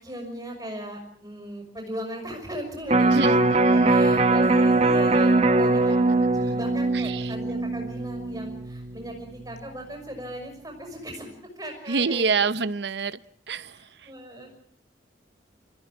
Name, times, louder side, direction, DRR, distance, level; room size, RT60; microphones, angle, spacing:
voice 1, 0.0-3.4 3.7-12.3 13.7-14.5, right 1 dB, 20° right, 5.8 m, -37 dB
Electric guitar, 2.9-9.1 9.5-9.6, right 2 dB, 35° right, 1.1 m, -21 dB
voice 2, 3.1-3.9 6.9-7.3 11.9-13.2 13.5-14.1, right 5 dB, 65° right, 0.8 m, -27 dB
26.5 x 14.5 x 8.5 m
head